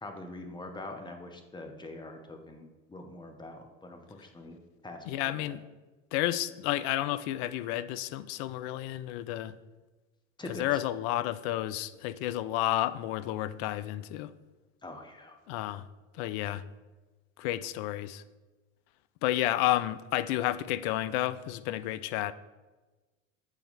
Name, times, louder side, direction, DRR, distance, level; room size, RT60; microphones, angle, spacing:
voice 1, 0.0-4.6 4.8-5.5 10.4-10.6 14.8-15.4, left 2 dB, 10° left, 5 dB, 0.9 m, -44 dB
voice 2, 5.1-5.6 6.1-9.5 10.5-14.3 15.5-15.8 16.1-16.6 17.4-18.2 19.2-22.3, left 14 dB, 55° left, 16 dB, 0.5 m, -31 dB
7.2 x 4.3 x 4.0 m, 1.2 s
hypercardioid pair, 85°, 39 cm